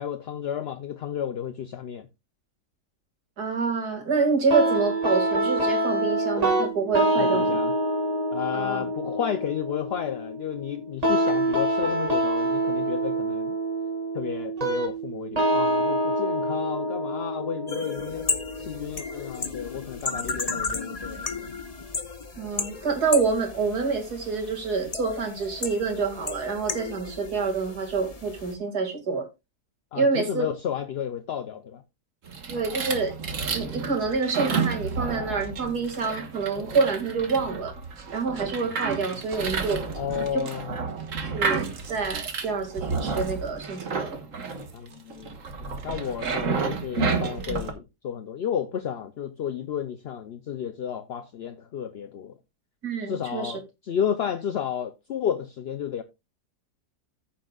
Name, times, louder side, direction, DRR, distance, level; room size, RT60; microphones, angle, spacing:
voice 1, 0.0-2.1 7.2-7.7 8.3-13.6 14.1-18.3 18.6-21.5 29.9-31.8 40.0-40.8 44.7-52.4 53.1-56.0, left 8 dB, 60° left, 0.7 m, -32 dB
voice 2, 3.4-7.6 8.5-8.8 22.4-29.3 29.9-30.5 32.5-33.2 33.5-37.7 38.1-39.8 40.3-40.4 41.2-44.2 52.8-53.6, right 4 dB, 75° right, 2.8 m, -27 dB
sound 1, 4.5-19.5, right 1 dB, 25° right, 1.7 m, -26 dB
sound 2, 17.7-28.5, left 4 dB, 30° left, 1.0 m, -34 dB
sound 3, 32.3-47.7, right 4 dB, 55° right, 1.7 m, -31 dB
14.5 x 7.3 x 2.3 m
omnidirectional pair, 1.7 m